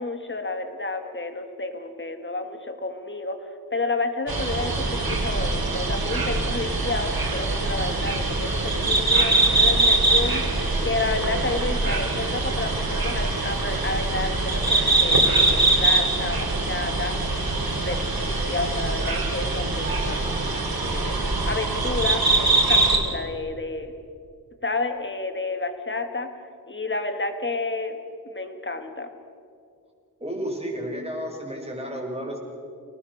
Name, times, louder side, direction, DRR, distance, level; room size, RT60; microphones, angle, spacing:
voice 1, 0.0-23.9 24.6-26.3 26.7-28.0 28.3-29.1, left 3 dB, 30° left, 7 dB, 2.2 m, -31 dB
sound 1, 4.3-23.0, right 2 dB, 70° right, 3.8 m, -23 dB
sound 2, 4.4-5.6, right 1 dB, ahead, 4.6 m, -36 dB
voice 2, 30.2-32.4, equal, 15° right, -1 dB, 5.4 m, -32 dB
27.0 x 18.5 x 6.6 m, 2.4 s
wide cardioid pair, 100°, 37 cm